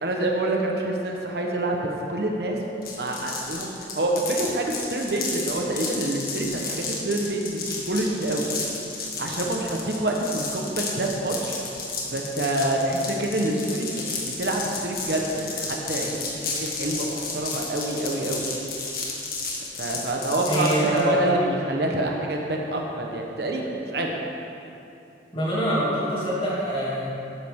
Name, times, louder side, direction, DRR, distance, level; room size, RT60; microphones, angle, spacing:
voice 1, 0.0-2.6 3.0-8.5 9.2-11.6 12.1-13.9 14.4-18.4 19.8-24.1, right 1 dB, 65° right, 0 dB, 1.2 m, -27 dB
sound 1, 2.8-21.0, left 4 dB, 55° left, 1.7 m, -32 dB
voice 2, 20.5-21.4 25.3-27.1, right 1 dB, 30° left, -7 dB, 2.7 m, -24 dB
12.5 x 9.6 x 3.7 m, 2.7 s
head